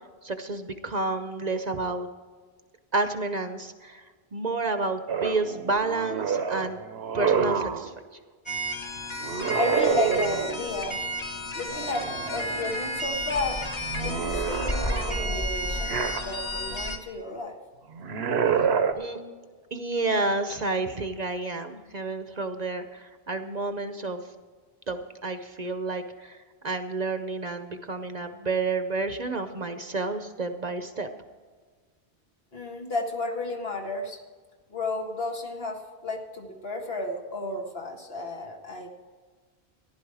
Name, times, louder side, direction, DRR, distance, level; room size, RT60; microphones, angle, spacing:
voice 1, 0.2-2.1 2.9-4.0 4.3-6.8 7.1-7.9 18.9-19.2 19.7-24.2 24.9-26.4 26.6-31.1, right 3 dB, 45° right, 8 dB, 0.8 m, -30 dB
sound 1, 5.1-7.9 9.2-10.8 11.7-12.7 13.1-16.6 17.9-18.9, right 6 dB, 75° right, 1.1 m, -28 dB
sound 2, 8.5-17.0, equal, 25° left, 1.3 m, -32 dB
voice 2, 9.5-11.0 11.5-13.6 13.9-17.6 32.5-34.2 34.7-38.9, left 2 dB, 65° left, 1 dB, 2.0 m, -32 dB
15.0 x 11.0 x 4.8 m, 1.5 s
omnidirectional pair, 1.1 m